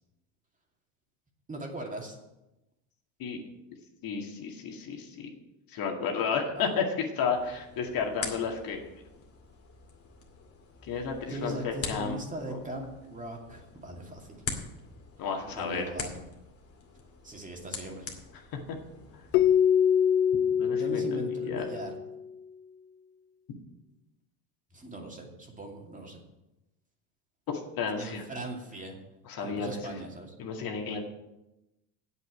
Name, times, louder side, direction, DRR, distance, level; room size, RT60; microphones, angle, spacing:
voice 1, 1.5-2.2 6.4-6.7 11.3-14.4 15.5-16.1 17.2-18.1 20.6-21.9 24.7-26.2 28.0-29.0 29.4-30.3, right 1 dB, 15° right, 1 dB, 2.5 m, -39 dB
voice 2, 4.0-5.3 5.7-8.8 10.8-12.2 12.5-12.6 15.2-15.8 18.5-18.8 20.3-21.0 21.4-21.7 27.5-28.2 29.3-30.0 30.4-31.0, left 5 dB, 50° left, 2 dB, 2.2 m, -32 dB
sound 1, 7.3-19.5, left 4 dB, 30° left, 2.3 m, -44 dB
Keyboard (musical), 19.3-22.2, left 8 dB, 80° left, 0.7 m, -24 dB
8.2 x 8.2 x 8.4 m, 0.96 s
supercardioid pair, 95°, 45 cm